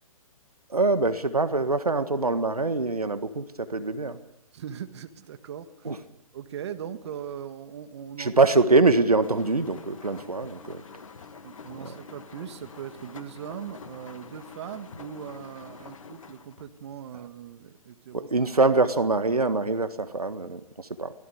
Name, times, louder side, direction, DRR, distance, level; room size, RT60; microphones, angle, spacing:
voice 1, 0.7-4.2 5.9-6.0 8.2-10.8 11.8-11.9 18.1-21.1, right 3 dB, 85° right, 11 dB, 1.7 m, -24 dB
voice 2, 4.5-6.0 6.3-8.3 11.4-18.3, right 9 dB, 50° right, 9 dB, 1.8 m, -39 dB
sound 1, 9.2-16.8 17.2-17.6 18.1-18.2, left 5 dB, 60° left, 2.3 m, -46 dB
24.5 x 18.5 x 6.5 m, 0.88 s
figure-of-eight pair, 130°, 19 cm